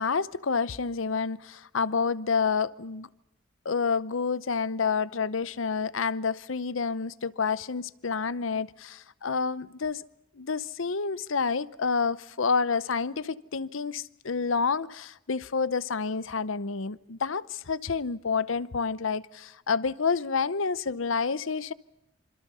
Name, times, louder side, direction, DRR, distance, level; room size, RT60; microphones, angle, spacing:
voice 1, 0.0-3.1 3.6-10.0 10.4-21.7, left 5 dB, 80° left, 0.8 m, -29 dB
27.0 x 26.0 x 5.6 m
head